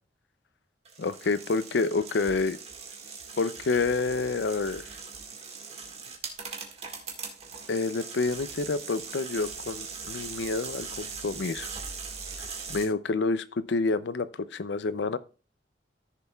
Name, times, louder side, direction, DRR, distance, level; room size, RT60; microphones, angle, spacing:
sound 1, 0.9-12.9, right 5 dB, 35° right, 1.7 m, -40 dB
voice 1, 1.0-2.6 3.4-4.8 7.7-11.7 12.7-15.2, left 3 dB, 75° left, 0.5 m, -28 dB
14.5 x 6.9 x 2.3 m
head